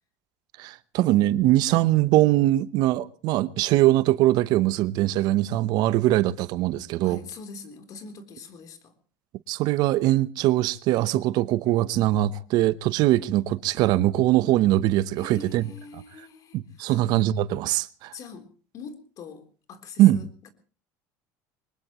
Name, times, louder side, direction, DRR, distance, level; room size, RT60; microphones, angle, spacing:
voice 1, 0.6-7.2 9.5-15.6 16.5-18.1 20.0-20.2, right 15 dB, 65° right, 0.9 m, -22 dB
voice 2, 7.0-8.9 15.2-17.0 18.1-20.5, left 5 dB, 50° left, 3.6 m, -43 dB
23.0 x 20.5 x 3.1 m
supercardioid pair, 110°, 8 cm